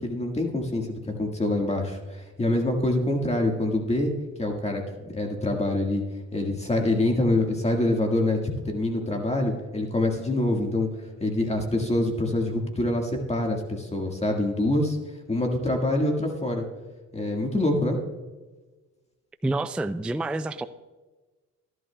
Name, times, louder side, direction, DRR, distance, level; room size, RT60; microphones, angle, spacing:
voice 1, 0.0-4.1 4.4-6.0 6.3-8.4 8.6-15.0 15.3-16.7 17.1-18.0, left 1 dB, 20° left, 2 dB, 1.6 m, -25 dB
voice 2, 19.4-20.7, right 2 dB, 5° right, 11 dB, 0.3 m, -28 dB
15.0 x 11.5 x 2.2 m, 1.2 s
cardioid pair, 90°, 30 cm